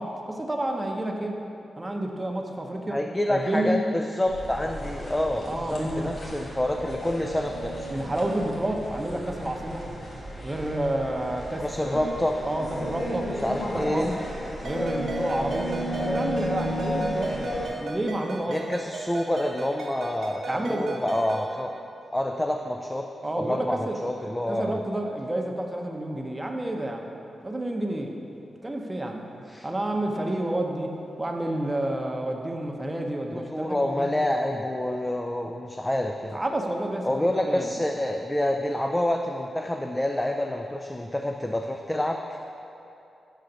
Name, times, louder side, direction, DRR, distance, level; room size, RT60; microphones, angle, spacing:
voice 1, 0.0-1.4 1.8-3.0 3.3-3.8 5.4-6.1 7.9-9.9 10.4-12.0 12.4-13.3 13.7-14.1 14.6-17.5 17.8-18.6 20.5-20.9 23.2-24.0 24.2-27.1 27.4-28.2 28.6-29.3 29.6-34.1 36.3-37.7, right 1 dB, 25° right, 2 dB, 0.7 m, -30 dB
voice 2, 2.9-7.9 11.6-12.4 13.4-14.2 18.5-21.7 22.1-23.1 23.4-24.8 29.5-29.7 33.3-36.4 37.0-42.4, left 1 dB, 15° left, 3 dB, 0.4 m, -28 dB
sound 1, 4.3-17.7, equal, 60° left, 1.2 m, -33 dB
Ringtone, 14.6-21.5, right 3 dB, 70° right, 1.2 m, -37 dB
4.9 x 3.9 x 5.6 m, 2.8 s
supercardioid pair, 40°, 0 cm